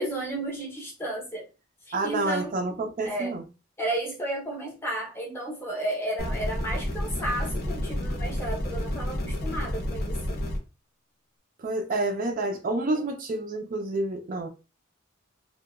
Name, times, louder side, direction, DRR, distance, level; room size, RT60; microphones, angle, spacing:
voice 1, 0.0-1.5 1.9-2.5 3.0-3.3 3.8-10.2 12.9-13.1, right 1 dB, 10° left, 0.7 m, -33 dB
voice 2, 1.9-3.4 11.6-14.5, right 2 dB, 40° right, 0.4 m, -28 dB
sound 1, 6.2-10.6, left 1 dB, 45° left, 0.6 m, -30 dB
2.8 x 2.1 x 2.3 m
head